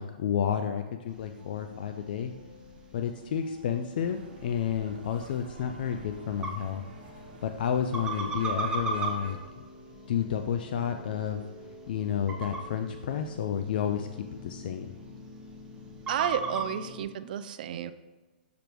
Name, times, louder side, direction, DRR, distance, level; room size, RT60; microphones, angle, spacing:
voice 1, 0.0-2.3 2.9-6.8 7.4-9.4 10.1-11.4 11.9-14.1 14.4-14.9, left 8 dB, 65° left, 7 dB, 0.4 m, -30 dB
sound 1, 1.1-16.7, right 3 dB, 15° right, 0.8 m, -40 dB
sound 2, 1.4-17.0, left 2 dB, 5° left, 1.3 m, -50 dB
sound 3, 4.0-9.4, right 5 dB, 75° right, 1.2 m, -49 dB
voice 2, 16.1-17.9, right 9 dB, 60° right, 12 dB, 0.4 m, -32 dB
6.6 x 5.0 x 3.0 m, 1.2 s
hypercardioid pair, 140°, 5 cm